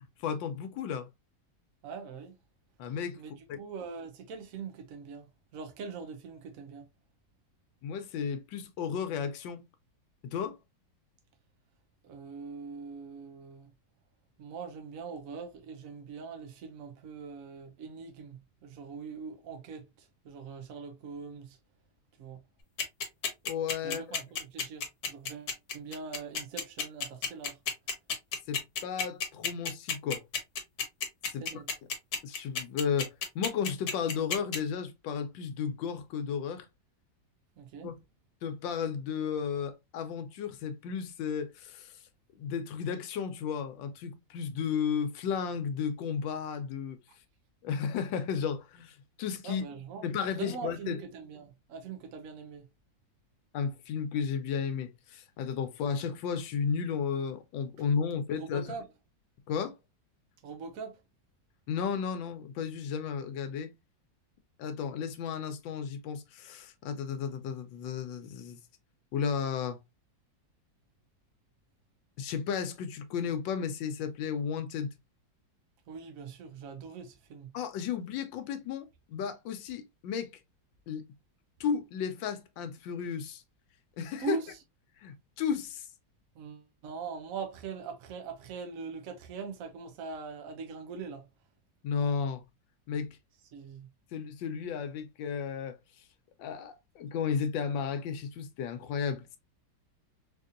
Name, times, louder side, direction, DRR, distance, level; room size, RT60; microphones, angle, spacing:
voice 1, 0.2-1.1 2.8-3.2 3.5-3.6 7.8-9.6 10.2-10.6 23.4-24.0 28.5-30.2 31.3-31.4 32.2-36.7 37.8-37.9 38.4-42.0 42.4-47.0 47.6-49.6 50.0-51.0 53.5-58.7 59.5-59.8 61.7-63.7 64.6-68.6 69.1-69.8 72.2-74.9 77.5-80.4 80.9-81.0 81.6-83.4 84.0-84.4 85.0-85.9 91.8-92.4 92.9-93.2 94.1-95.8 96.4-99.4, left 6 dB, 90° left, 1.4 m, -33 dB
voice 2, 1.8-2.4 3.2-3.3 3.6-5.3 5.5-6.9 12.0-13.7 14.4-21.6 22.2-22.4 23.8-27.6 31.4-31.6 37.6-37.9 49.4-50.0 50.4-52.7 58.3-58.9 60.4-61.0 75.9-77.5 84.2-84.5 86.4-91.3 93.5-93.9, right 5 dB, 70° right, 0.8 m, -42 dB
sound 1, 22.8-34.6, left 6 dB, 60° left, 1.4 m, -31 dB
4.0 x 2.6 x 2.5 m
omnidirectional pair, 2.0 m